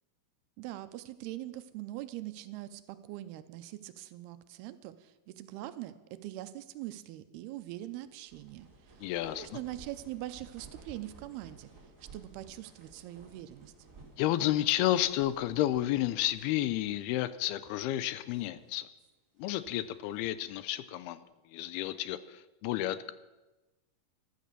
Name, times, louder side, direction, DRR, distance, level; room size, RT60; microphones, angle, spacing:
voice 1, 0.6-11.7 12.1-13.7, right 15 dB, 80° right, 12 dB, 2.6 m, -43 dB
sound 1, 7.8-17.3 17.6-17.7 18.3-18.8 19.4-20.5, right 3 dB, 25° right, 3.3 m, -56 dB
voice 2, 9.0-9.5 14.2-18.9 19.4-21.2 21.5-23.1, left 14 dB, 80° left, 15 dB, 2.5 m, -31 dB
14.5 x 12.5 x 6.7 m, 1.1 s
omnidirectional pair, 4.7 m